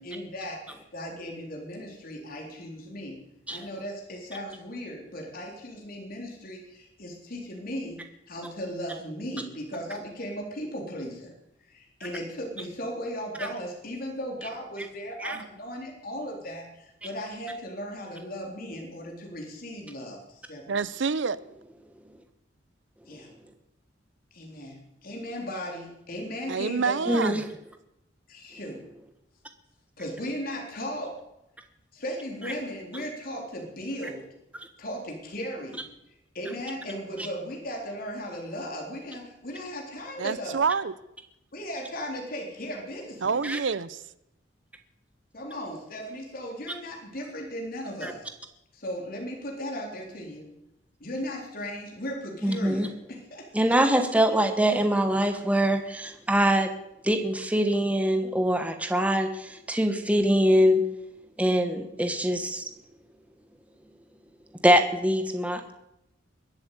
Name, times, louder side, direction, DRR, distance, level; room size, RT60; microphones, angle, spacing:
voice 1, 0.0-3.2 3.5-8.0 8.3-11.3 11.6-20.8 23.1-23.3 24.3-27.0 28.3-28.8 30.0-31.2 31.9-34.2 34.8-35.8 36.3-40.6 41.5-43.4 45.3-48.3 48.7-50.5 51.0-53.7, equal, 55° left, 3.6 m, -37 dB
voice 2, 20.7-21.4 26.5-27.4 40.2-40.9 43.2-44.0, right 5 dB, 85° right, 0.6 m, -27 dB
voice 3, 27.1-27.4 43.4-43.6 48.0-48.1 52.4-52.9 53.5-56.7 57.0-60.9 61.4-62.6 64.6-65.7, equal, 10° right, 1.2 m, -23 dB
21.5 x 8.0 x 8.3 m
head